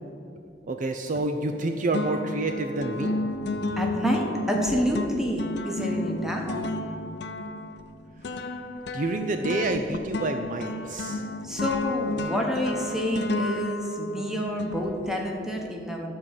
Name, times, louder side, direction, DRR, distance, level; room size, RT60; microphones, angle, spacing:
voice 1, 0.6-3.1 8.3-8.4 8.9-11.2, right 2 dB, 45° right, 6 dB, 0.5 m, -28 dB
sound 1, 1.1-1.6 1.9-15.3, left 2 dB, 65° left, 0.6 m, -32 dB
voice 2, 3.8-6.6 11.4-16.1, equal, 5° right, 0 dB, 1.3 m, -28 dB
13.0 x 4.7 x 7.5 m, 2.7 s
head